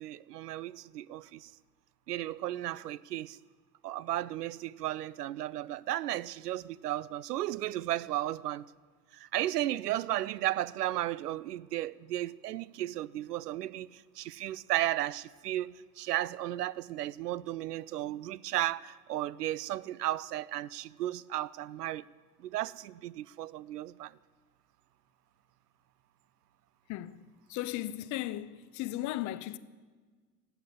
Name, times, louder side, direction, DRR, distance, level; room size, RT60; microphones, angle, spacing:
voice 1, 0.0-1.5 2.1-3.4 3.8-8.6 9.1-22.0 22.4-24.1, right 14 dB, 80° right, 0.5 m, -34 dB
voice 2, 26.9-29.6, left 14 dB, 40° left, 0.7 m, -36 dB
18.0 x 8.0 x 8.0 m
figure-of-eight pair, 75°, 47 cm